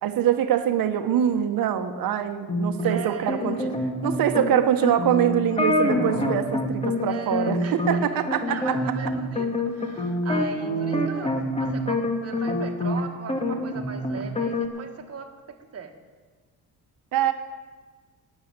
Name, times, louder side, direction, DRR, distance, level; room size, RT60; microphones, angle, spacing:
voice 1, 0.0-3.7 4.0-8.7 17.1-17.3, right 10 dB, 70° right, 8 dB, 1.3 m, -24 dB
sound 1, 2.5-13.0 13.3-14.7, left 1 dB, 15° left, 1.7 m, -26 dB
voice 2, 2.8-3.7 7.1-8.0 8.3-15.9, right 6 dB, 40° right, 5 dB, 1.7 m, -39 dB
13.0 x 9.6 x 8.9 m, 1.4 s
cardioid pair, 135°, 37 cm